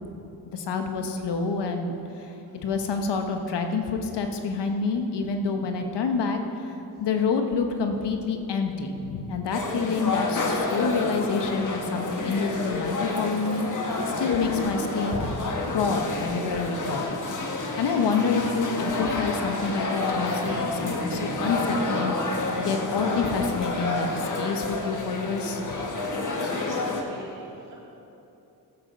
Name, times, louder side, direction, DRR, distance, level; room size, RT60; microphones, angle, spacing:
voice 1, 0.5-2.3 2.6-6.4 7.0-13.7 14.2-15.3 15.7-17.1 17.8-22.1 22.6-25.6, left 4 dB, 75° left, 5 dB, 1.2 m, -27 dB
sound 1, 9.5-27.0, left 3 dB, 45° left, 1.5 m, -29 dB
Boom, 20.2-23.4, right 5 dB, 25° right, 0.4 m, -39 dB
voice 2, 26.4-27.8, right 1 dB, 85° right, -5 dB, 3.0 m, -43 dB
14.0 x 7.7 x 5.1 m, 2.9 s
cardioid pair, 55°, 41 cm